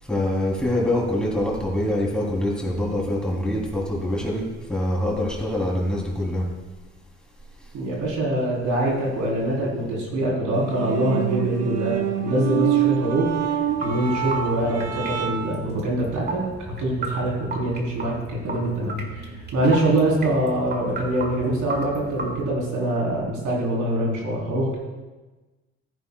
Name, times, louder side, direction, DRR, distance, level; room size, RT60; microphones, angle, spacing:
voice 1, 0.0-6.5 7.6-7.7, left 1 dB, 5° left, -3 dB, 3.0 m, -25 dB
voice 2, 7.7-16.4 16.8-19.3 19.5-24.8, right 1 dB, 80° right, -4 dB, 3.6 m, -24 dB
sound 1, 10.6-15.7, right 10 dB, 55° right, 1.0 m, -26 dB
sound 2, 13.7-22.4, right 2 dB, 35° right, 1.8 m, -35 dB
15.0 x 9.3 x 2.3 m, 1.2 s
cardioid pair, 90°, 30 cm